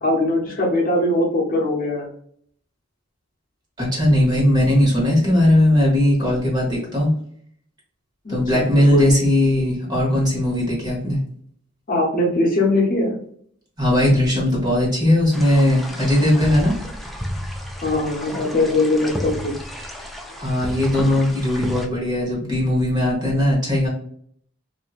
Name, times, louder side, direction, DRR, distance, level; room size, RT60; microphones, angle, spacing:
voice 1, 0.0-2.1 8.2-8.7 8.9-9.2 11.9-13.1 17.8-19.5, left 2 dB, 45° left, -2 dB, 0.8 m, -21 dB
voice 2, 3.8-7.1 8.3-11.2 13.8-16.8 20.4-23.9, left 1 dB, 20° right, -4 dB, 1.2 m, -18 dB
sound 1, 15.3-21.9, equal, ahead, 0.3 m, -32 dB
2.8 x 2.5 x 2.4 m, 0.62 s
head